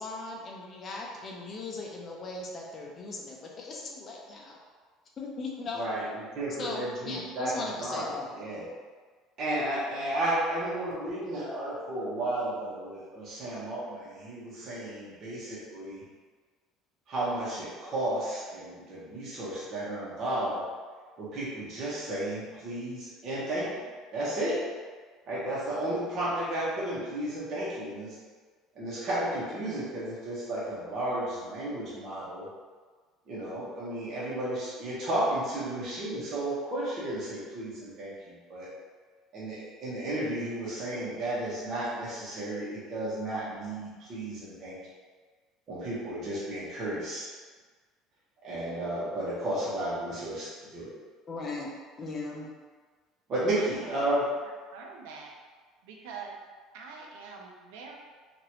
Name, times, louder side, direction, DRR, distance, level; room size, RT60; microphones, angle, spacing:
voice 1, 0.0-4.6 5.2-5.8 6.6-8.3 51.3-52.5, left 3 dB, 35° left, -2 dB, 0.5 m, -38 dB
voice 2, 5.7-8.0 8.3-8.6 9.4-16.0 17.1-20.6 21.2-23.8 24.1-24.6 25.3-28.2 28.7-32.5 33.3-38.7 39.3-44.8 45.7-47.3 48.4-50.9 53.3-54.2, right 1 dB, 45° right, -8 dB, 1.1 m, -33 dB
voice 3, 53.6-54.1 54.7-55.3 55.8-56.4 56.7-57.9, right 5 dB, 90° right, 0 dB, 0.5 m, -44 dB
2.9 x 2.5 x 2.9 m, 1.5 s
cardioid pair, 125°, 0 cm